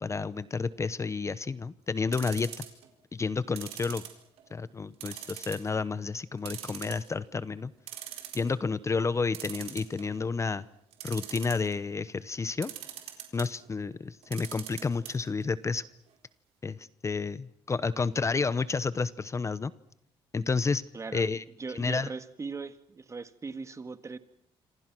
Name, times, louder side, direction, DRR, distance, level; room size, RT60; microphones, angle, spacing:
voice 1, 0.0-2.6 3.1-4.0 4.5-7.7 8.3-10.6 11.0-12.7 13.3-15.8 16.6-19.7 20.3-20.8 21.1-21.4 21.7-22.1, left 4 dB, 30° left, 16 dB, 0.9 m, -30 dB
sound 1, 2.1-2.9 3.6-4.5 5.0-5.7 6.0-6.1 6.4-7.3 7.6-7.7 7.9-8.5 9.3-10.2 10.9-11.7 12.6-13.5 14.2-15.1 15.4-15.5 15.7-15.8, right 12 dB, 90° right, 4.2 m, -41 dB
voice 2, 20.9-21.2 21.6-24.2, right 4 dB, 30° right, 10 dB, 1.8 m, -39 dB
26.5 x 26.5 x 6.1 m, 0.77 s
cardioid pair, 95°, 10 cm